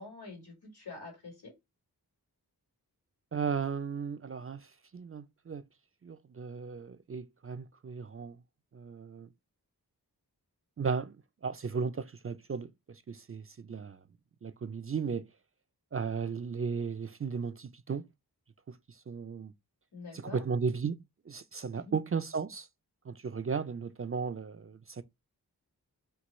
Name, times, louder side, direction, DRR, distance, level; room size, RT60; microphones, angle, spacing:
voice 1, 0.0-1.5 19.9-20.4 21.8-21.9, left 3 dB, 80° left, 2.6 m, -46 dB
voice 2, 3.3-5.6 6.0-8.4 8.7-9.3 10.8-11.2 11.4-14.0 14.4-15.3 15.9-18.1 18.7-19.5 20.1-22.7 23.1-25.0, right 5 dB, 35° right, 0.4 m, -35 dB
4.5 x 2.2 x 4.1 m
wide cardioid pair, 55°, 38 cm